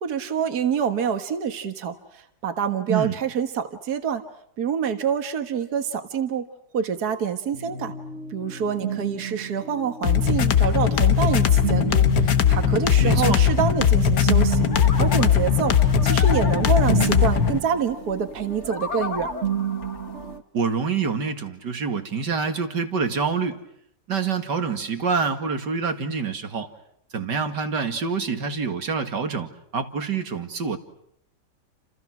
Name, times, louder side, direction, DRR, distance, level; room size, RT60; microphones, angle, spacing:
voice 1, 0.0-4.2 4.6-6.5 6.7-7.9 8.3-14.7 14.9-19.3, right 7 dB, 65° right, 7 dB, 2.1 m, -26 dB
sound 1, 7.5-20.4, right 8 dB, 45° right, 1.5 m, -33 dB
sound 2, 10.0-17.6, left 8 dB, 75° left, 1.8 m, -19 dB
voice 2, 13.0-13.4 20.5-23.6 24.1-26.7 27.1-30.8, right 5 dB, 80° right, 6 dB, 2.9 m, -26 dB
sound 3, 14.5-20.4, left 4 dB, 40° left, 2.1 m, -35 dB
30.0 x 28.0 x 6.2 m, 0.74 s
omnidirectional pair, 1.8 m